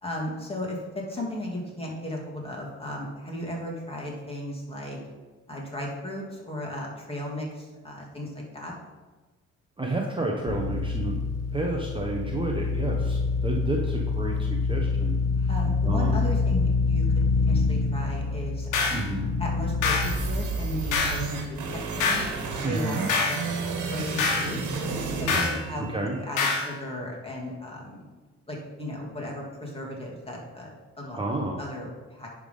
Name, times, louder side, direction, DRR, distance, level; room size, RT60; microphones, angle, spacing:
voice 1, 0.0-5.0 5.5-8.8 15.5-19.0 19.4-22.2 22.7-24.6 25.2-28.0 28.5-31.2 31.6-32.3, left 1 dB, 20° left, -2 dB, 2.2 m, -35 dB
voice 2, 9.8-11.2 11.5-15.5 15.8-16.2 18.9-19.3 22.6-23.1 25.9-26.2 31.1-31.6, right 2 dB, 15° right, 0 dB, 0.9 m, -30 dB
sound 1, 10.5-20.4, left 4 dB, 55° left, 0.9 m, -26 dB
sound 2, 18.7-19.0 19.8-20.1 20.9-21.2 22.0-22.3 23.1-23.4 24.2-24.5 25.3-25.6 26.4-26.7, left 4 dB, 85° left, 1.2 m, -25 dB
sound 3, 20.0-26.0, right 3 dB, 75° right, 1.6 m, -32 dB
10.0 x 3.7 x 5.4 m, 1.3 s
cardioid pair, 90°, 30 cm